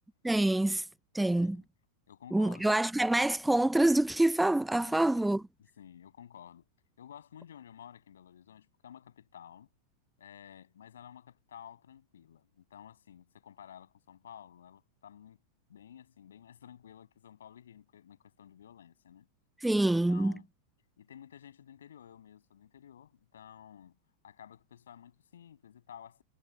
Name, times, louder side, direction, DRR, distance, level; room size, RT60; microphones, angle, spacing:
voice 1, 0.2-0.9 1.1-1.6 2.3-5.4 19.6-20.3, right 1 dB, 5° right, 0.7 m, -26 dB
voice 2, 1.2-1.7 2.1-2.7 4.8-5.4 5.8-6.6 7.0-9.7 10.2-15.4 15.7-19.3 20.1-20.5 21.0-24.0 24.2-26.2, left 9 dB, 65° left, 7.7 m, -52 dB
figure-of-eight pair, 90°, 0 cm